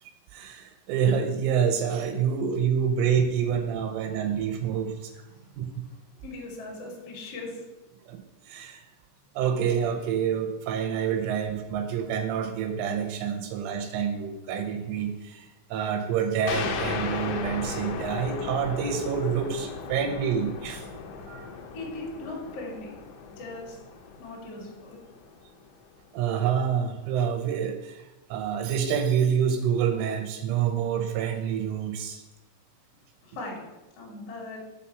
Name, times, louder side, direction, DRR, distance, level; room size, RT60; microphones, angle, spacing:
voice 1, 0.0-5.1 5.6-5.8 8.1-8.9 9.4-20.9 21.3-21.5 26.1-32.2, right 7 dB, 85° right, 5 dB, 2.9 m, -27 dB
voice 2, 4.0-4.4 5.2-7.6 21.7-23.0 23.3-23.8 24.2-25.0 33.2-33.6 34.0-34.6, left 2 dB, 55° left, -3 dB, 1.7 m, -40 dB
sound 1, 16.5-25.7, left 5 dB, 80° left, 2.5 m, -36 dB
7.4 x 4.2 x 5.7 m, 1.0 s
omnidirectional pair, 5.9 m